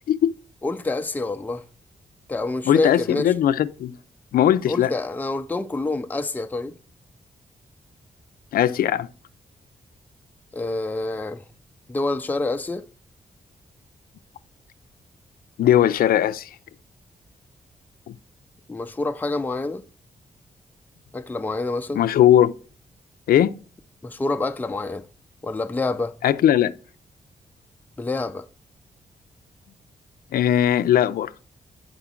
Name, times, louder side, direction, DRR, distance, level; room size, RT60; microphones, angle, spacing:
voice 1, 0.6-1.6 2.3-3.3 4.7-6.7 10.5-11.4 11.9-12.9 18.7-19.8 21.1-22.0 24.0-25.1 25.4-26.1 28.0-28.5, left 2 dB, 10° left, 0.4 m, -27 dB
voice 2, 2.7-4.0 4.3-4.9 8.5-9.1 15.6-16.5 18.1-18.2 21.9-22.5 23.3-23.5 26.2-26.7 30.3-31.3, left 11 dB, 85° left, 0.4 m, -19 dB
6.9 x 5.0 x 3.7 m
wide cardioid pair, 110°, 15 cm